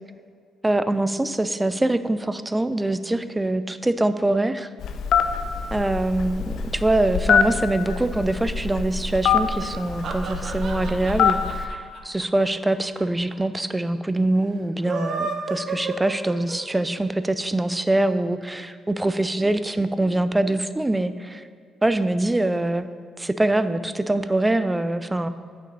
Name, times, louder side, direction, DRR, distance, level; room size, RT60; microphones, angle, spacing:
voice 1, 0.6-4.7 5.7-21.5 21.8-22.9 23.2-25.3, right 2 dB, 15° right, 12 dB, 0.4 m, -24 dB
Telephone, 4.8-11.6, left 7 dB, 70° left, 0.5 m, -24 dB
sound 1, 9.7-13.0 13.3-13.4 13.6-13.7 14.7-16.8, right 4 dB, 65° right, 1.0 m, -32 dB
8.4 x 6.1 x 5.4 m, 2.1 s
cardioid pair, 90°, 0 cm